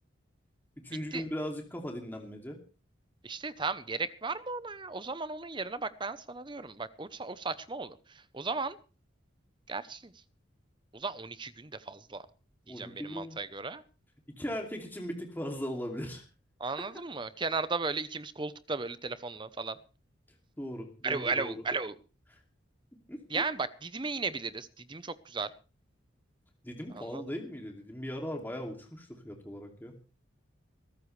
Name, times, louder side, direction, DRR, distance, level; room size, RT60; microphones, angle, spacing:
voice 1, 0.8-2.6 12.7-13.4 14.4-16.2 20.6-21.6 22.3-22.4 23.1-23.4 26.6-29.9, equal, 10° left, 2 dB, 2.6 m, -38 dB
voice 2, 3.2-8.0 8.3-8.8 9.7-10.1 10.9-12.2 12.8-13.8 16.6-19.8 21.0-21.9 23.3-25.5 26.9-27.2, right 4 dB, 25° right, 14 dB, 0.8 m, -35 dB
22.0 x 13.5 x 3.3 m, 0.34 s
head